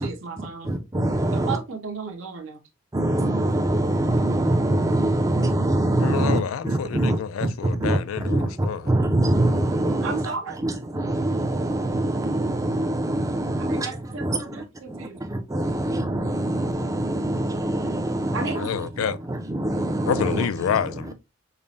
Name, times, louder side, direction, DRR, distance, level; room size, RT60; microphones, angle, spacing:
voice 1, 0.0-0.7 1.3-2.6 10.0-10.7 13.6-15.3 18.3-18.7, right 4 dB, 80° right, 0.8 m, -33 dB
voice 2, 0.6-1.6 2.9-7.5 7.8-8.0 8.2-10.3 10.6-13.9 14.2-14.6 14.9-18.5 19.3-20.4, right 1 dB, 15° right, 0.4 m, -24 dB
voice 3, 5.9-8.9 18.6-19.2 20.1-21.1, left 7 dB, 85° left, 0.3 m, -28 dB
5.3 x 2.1 x 2.6 m
head